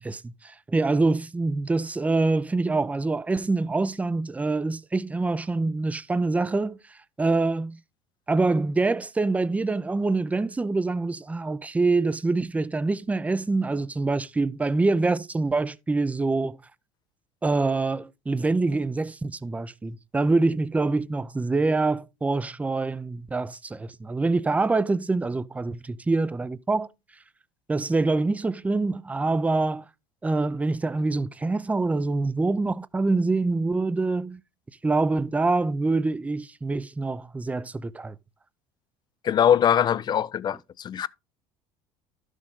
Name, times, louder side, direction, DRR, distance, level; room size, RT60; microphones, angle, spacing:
voice 1, 0.0-7.8 8.3-16.6 17.4-26.9 27.7-29.8 30.2-34.4 34.8-38.2, right 3 dB, 10° right, 0.5 m, -25 dB
voice 2, 39.2-41.1, left 9 dB, 35° left, 0.5 m, -22 dB
12.0 x 6.4 x 3.7 m
supercardioid pair, 95°, 12 cm